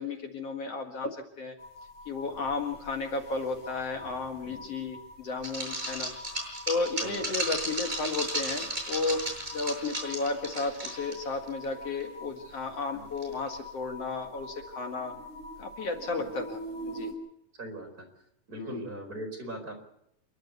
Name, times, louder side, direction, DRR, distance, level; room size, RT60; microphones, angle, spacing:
voice 1, 0.0-1.5 2.1-6.1 6.6-9.2 9.5-15.1 15.6-17.1 18.5-18.8, left 3 dB, 55° left, 4 dB, 2.8 m, -33 dB
sound 1, 1.6-17.1, left 1 dB, 85° left, 6.4 m, -45 dB
sound 2, 5.4-11.2 11.5-11.6 12.0-12.1 13.2-13.5, right 1 dB, 15° right, 7.5 m, -34 dB
voice 2, 17.6-18.1 18.5-19.8, right 1 dB, 30° right, 2 dB, 4.9 m, -40 dB
28.5 x 12.0 x 8.1 m, 0.78 s
omnidirectional pair, 3.3 m